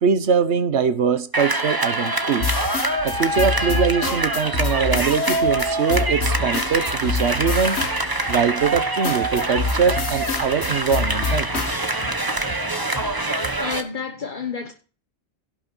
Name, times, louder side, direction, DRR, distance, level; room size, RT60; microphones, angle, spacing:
voice 1, 0.0-2.5 3.0-7.8 8.3-11.6, right 6 dB, 85° right, 1.2 m, -22 dB
sound 1, 1.3-13.8, right 2 dB, 20° right, 1.2 m, -25 dB
sound 2, 2.4-8.4 9.0-11.8, left 5 dB, 80° left, 1.4 m, -27 dB
sound 3, 2.6-13.6, right 3 dB, 60° right, 5.6 m, -41 dB
voice 2, 13.6-14.7, left 6 dB, 50° left, 1.3 m, -30 dB
17.0 x 6.3 x 6.1 m
omnidirectional pair, 1.1 m